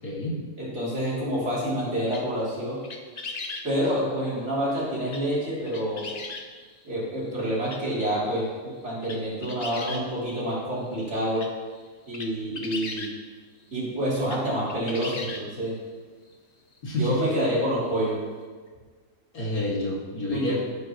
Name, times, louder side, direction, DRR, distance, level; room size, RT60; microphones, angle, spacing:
voice 1, 0.0-0.4 3.8-3.9 16.8-17.2 19.3-20.6, left 1 dB, 90° left, -5 dB, 2.7 m, -29 dB
voice 2, 0.6-2.8 3.6-6.1 6.8-11.5 12.1-13.1 13.7-15.8 17.0-18.2 20.3-20.6, equal, 50° right, -7 dB, 3.5 m, -28 dB
sound 1, 2.1-2.5 2.8-3.7 5.1-5.4 5.7-6.5 7.3-7.4 7.6-7.8 8.4-8.5 8.8-10.4 10.8-10.9 11.2-13.1 14.1-14.4 14.7-15.6 16.3-16.4 16.7-16.8 18.1-18.2, left 3 dB, 35° left, 0.7 m, -37 dB
11.5 x 9.4 x 3.1 m, 1.5 s
omnidirectional pair, 1.5 m